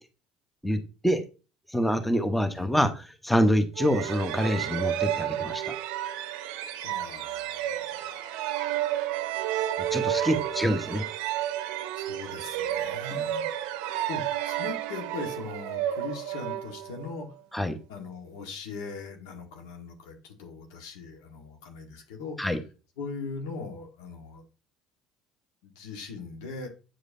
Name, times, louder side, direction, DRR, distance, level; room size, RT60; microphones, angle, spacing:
voice 1, 0.6-1.2 1.7-5.8 9.9-11.0 13.1-13.2 17.5-17.8 22.4-22.6, equal, 5° left, 8 dB, 1.0 m, -26 dB
sound 1, 3.8-17.3, right 12 dB, 75° right, 0.5 m, -31 dB
voice 2, 6.8-8.8 10.3-11.1 12.0-13.4 13.8-17.3 17.9-22.5 23.0-24.4 25.6-26.7, left 4 dB, 85° left, 3 dB, 1.5 m, -40 dB
8.3 x 4.9 x 2.7 m, 0.33 s
hypercardioid pair, 75°, 2 cm